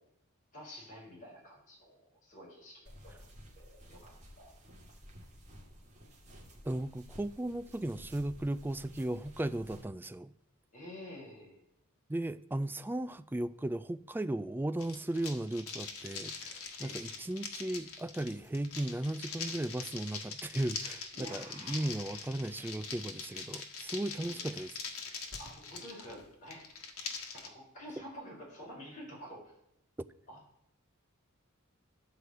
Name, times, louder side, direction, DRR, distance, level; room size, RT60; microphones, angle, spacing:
voice 1, 0.5-3.1 3.5-4.5 10.7-11.6 16.8-17.0 21.1-22.0 24.1-24.5 25.4-26.7 27.3-29.5 30.3-30.4, equal, 35° left, 4.9 m, -49 dB
sound 1, 2.8-9.8, equal, 35° right, 2.0 m, -53 dB
voice 2, 6.7-10.3 12.1-24.8, right 1 dB, 10° right, 0.3 m, -36 dB
sound 2, 14.8-27.5, left 5 dB, 75° left, 1.6 m, -43 dB
12.5 x 4.9 x 7.9 m
head